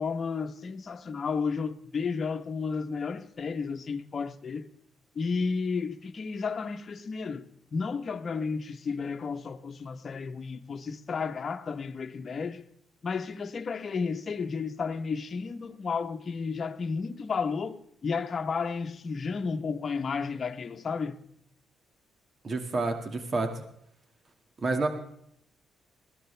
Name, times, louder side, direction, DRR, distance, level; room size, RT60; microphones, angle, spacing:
voice 1, 0.0-4.7 5.1-7.5 7.7-12.6 13.0-21.2, left 5 dB, 45° left, 1.1 m, -32 dB
voice 2, 22.4-23.6 24.6-24.9, right 3 dB, 40° right, 2.0 m, -29 dB
21.0 x 15.0 x 3.4 m
cardioid pair, 90°, 0 cm